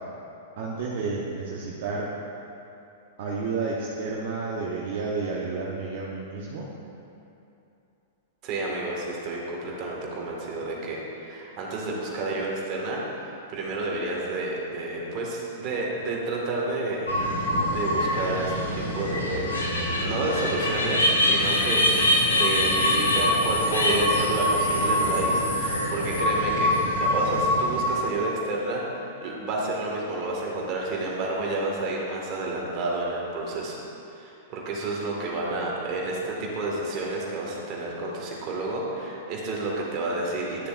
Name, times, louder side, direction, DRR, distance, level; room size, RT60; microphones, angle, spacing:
voice 1, 0.6-2.1 3.2-6.7, right 4 dB, 55° right, -5 dB, 1.0 m, -31 dB
voice 2, 8.4-17.2 17.7-33.8 34.1-40.7, right 2 dB, 40° right, -3 dB, 1.8 m, -30 dB
sound 1, 17.1-27.9, left 1 dB, 85° left, 1.3 m, -24 dB
11.5 x 6.9 x 2.5 m, 2.8 s
hypercardioid pair, 105°, 0 cm